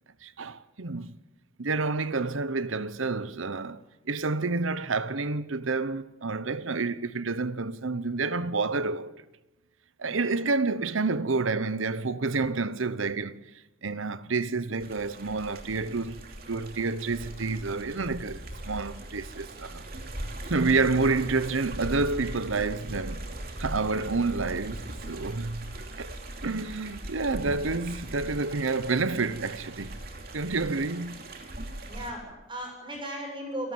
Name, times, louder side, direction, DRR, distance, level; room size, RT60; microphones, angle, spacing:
voice 1, 0.2-1.2 1.6-9.2 10.0-13.5 13.8-19.8 20.5-23.3 23.6-26.1 26.4-29.9 30.3-31.2, right 3 dB, 75° right, 0.9 m, -29 dB
voice 2, 10.0-10.4 27.2-27.5 31.8-33.7, right 1 dB, 25° right, 7.1 m, -37 dB
sound 1, 14.8-32.1, right 1 dB, 45° right, 2.6 m, -40 dB
27.5 x 13.0 x 9.5 m
head